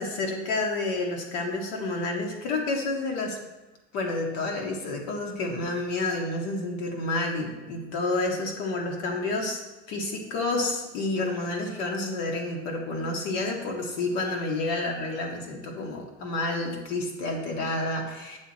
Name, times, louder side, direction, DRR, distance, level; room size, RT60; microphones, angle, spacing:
voice 1, 0.0-3.4 3.9-9.6 9.9-18.4, left 2 dB, 75° left, 1 dB, 2.0 m, -29 dB
8.2 x 7.4 x 4.3 m, 1.1 s
cardioid pair, 165°, 30 cm